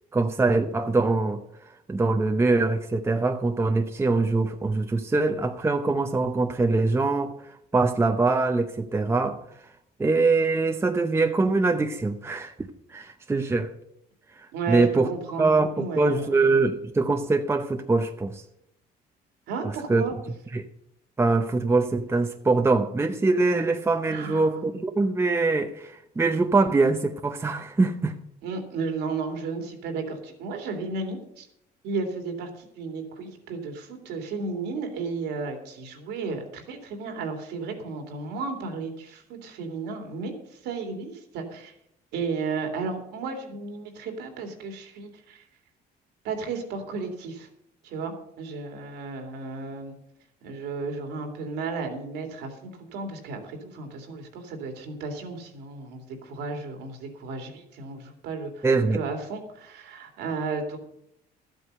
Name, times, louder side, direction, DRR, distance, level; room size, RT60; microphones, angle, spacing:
voice 1, 0.1-1.4 1.9-9.4 10.0-13.7 14.7-15.1 15.4-18.4 19.9-20.0 20.5-20.6 21.2-28.2 58.6-59.0, right 3 dB, 15° right, 0.8 m, -23 dB
voice 2, 14.5-16.4 19.5-20.1 24.1-24.5 28.4-31.5 31.8-41.7 42.1-45.4 46.2-47.5 47.8-50.0 50.4-60.8, right 4 dB, 85° right, 2.7 m, -33 dB
13.0 x 8.0 x 6.6 m
cardioid pair, 110°, 17 cm